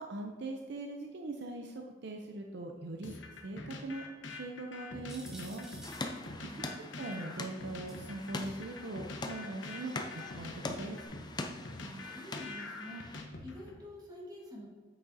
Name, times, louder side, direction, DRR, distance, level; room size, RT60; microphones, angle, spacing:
voice 1, 0.0-3.2 3.4-4.1 4.3-5.7 7.0-11.0, right 2 dB, 60° right, 2 dB, 0.6 m, -41 dB
sound 1, 3.0-13.8, left 2 dB, 80° left, 0.9 m, -46 dB
sound 2, 5.1-6.1 7.9-8.5 9.3-9.4 11.0-11.1, equal, 5° right, 1.2 m, -52 dB
sound 3, 5.8-13.2, left 2 dB, 25° left, 0.5 m, -43 dB
voice 2, 6.4-6.7 11.8-14.7, equal, 20° right, -2 dB, 1.5 m, -48 dB
8.8 x 6.1 x 2.7 m, 1.4 s
head